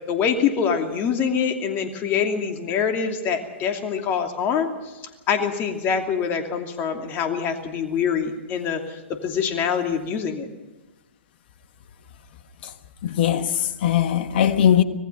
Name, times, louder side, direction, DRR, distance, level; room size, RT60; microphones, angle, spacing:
voice 1, 0.1-4.7 5.3-10.5, left 7 dB, 30° left, 2.8 m, -25 dB
voice 2, 13.0-14.8, left 10 dB, 55° left, 1.4 m, -20 dB
25.5 x 18.5 x 5.7 m
figure-of-eight pair, 110°, 7 cm